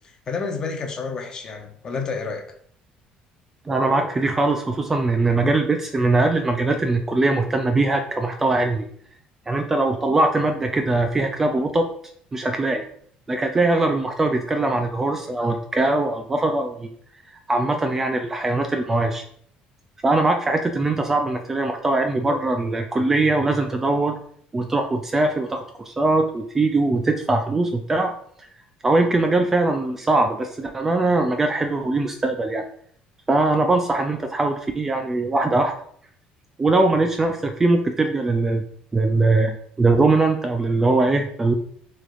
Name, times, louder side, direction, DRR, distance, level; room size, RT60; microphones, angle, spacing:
voice 1, 0.3-2.4, left 4 dB, 25° left, 3 dB, 0.7 m, -29 dB
voice 2, 3.7-8.9 9.5-11.9 12.3-12.9 13.3-16.9 17.5-19.2 20.0-24.2 24.5-28.1 28.4-28.5 28.8-32.6 33.3-35.7 36.6-38.6 38.9-41.5, right 2 dB, 15° right, 5 dB, 0.3 m, -21 dB
6.4 x 3.4 x 2.5 m, 0.63 s
cardioid pair, 175°, 3 cm